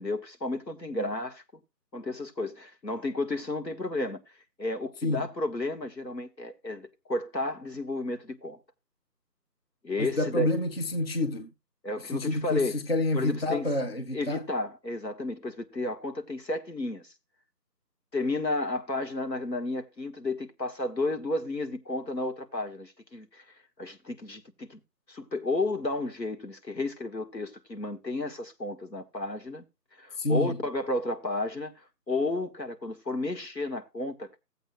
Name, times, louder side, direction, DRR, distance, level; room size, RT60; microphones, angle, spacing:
voice 1, 0.0-1.4 1.9-4.2 4.6-8.6 9.8-10.5 11.8-12.8 13.1-13.7 14.1-17.1 18.1-23.4 23.8-24.8 25.1-29.7 30.0-34.4, left 2 dB, 85° left, 1.9 m, -32 dB
voice 2, 10.0-11.5 12.0-14.4 30.2-30.6, left 2 dB, 35° left, 0.8 m, -28 dB
16.0 x 8.0 x 2.3 m
figure-of-eight pair, 160°, 49 cm